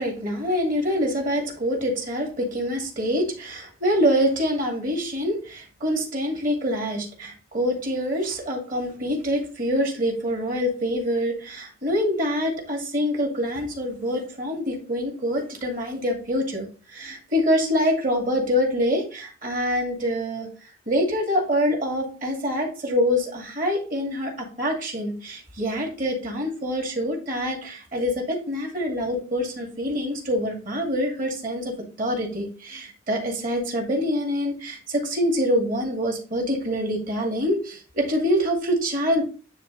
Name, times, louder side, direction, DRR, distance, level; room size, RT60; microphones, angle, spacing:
voice 1, 0.0-20.5 20.9-39.3, equal, 45° right, 1 dB, 2.1 m, -25 dB
9.7 x 3.4 x 3.9 m, 0.37 s
head